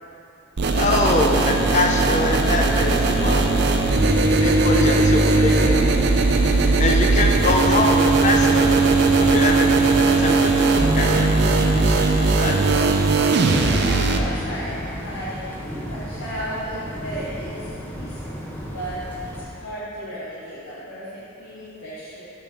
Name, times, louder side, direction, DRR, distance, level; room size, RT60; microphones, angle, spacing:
sound 1, 0.6-14.2, right 3 dB, 50° right, 0.5 m, -18 dB
voice 1, 0.7-3.7 4.4-6.5 6.8-8.8 9.2-9.7 10.2-12.6, left 2 dB, 35° left, 1 dB, 0.5 m, -24 dB
sound 2, 1.3-19.4, equal, 10° left, 1.0 m, -32 dB
voice 2, 13.4-18.4 18.7-22.3, equal, 80° left, -12 dB, 2.1 m, -34 dB
6.7 x 5.9 x 6.0 m, 2.7 s
head